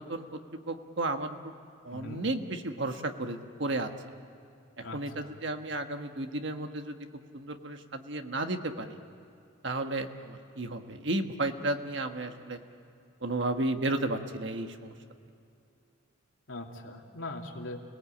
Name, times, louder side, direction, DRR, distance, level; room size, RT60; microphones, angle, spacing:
voice 1, 0.0-1.5 1.8-3.9 4.8-7.0 7.3-9.0 9.6-12.6 13.2-14.9, right 2 dB, 60° right, 6 dB, 1.4 m, -33 dB
voice 2, 1.9-2.3 4.8-5.4 16.5-17.8, left 2 dB, 75° left, 0 dB, 2.8 m, -41 dB
29.5 x 19.0 x 8.7 m, 2.6 s
head